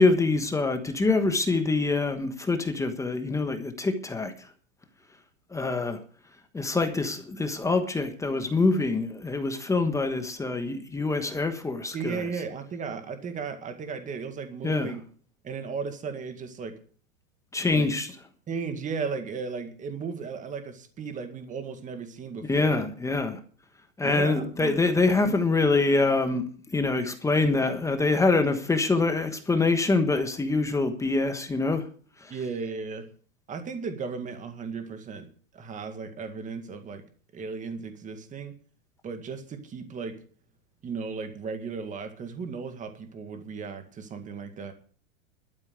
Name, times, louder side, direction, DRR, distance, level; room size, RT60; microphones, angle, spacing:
voice 1, 0.0-4.5 5.5-6.0 6.5-12.2 14.6-14.9 17.5-18.1 22.5-23.4 24.0-31.9 32.2-32.3, left 3 dB, 10° left, 1.2 m, -25 dB
voice 2, 11.9-15.0 15.4-16.8 17.7-17.9 18.5-22.8 24.0-24.8 32.3-33.1 33.5-35.3 35.5-37.0 37.3-38.6 39.0-40.2 40.8-44.7, right 5 dB, 20° right, 2.0 m, -35 dB
12.5 x 8.8 x 8.1 m
supercardioid pair, 145°, 40 cm